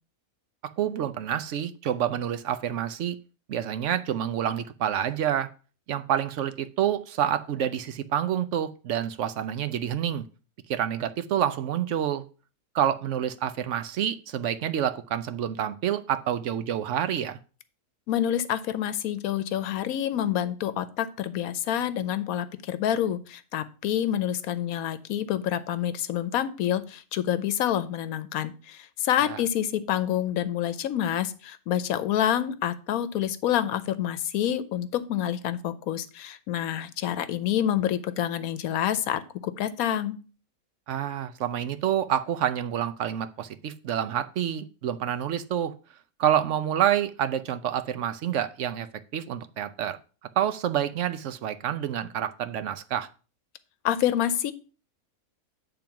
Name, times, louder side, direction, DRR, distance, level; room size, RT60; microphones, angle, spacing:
voice 1, 0.8-3.2 3.5-5.5 5.9-10.2 10.7-12.2 12.7-17.4 29.2-29.4 40.9-45.7 46.2-48.9 49.1-50.0 50.4-53.1, right 10 dB, 65° right, 11 dB, 0.9 m, -28 dB
voice 2, 18.1-40.2 53.8-54.5, left 10 dB, 80° left, 13 dB, 1.1 m, -27 dB
8.9 x 3.8 x 5.7 m, 0.36 s
omnidirectional pair, 1.5 m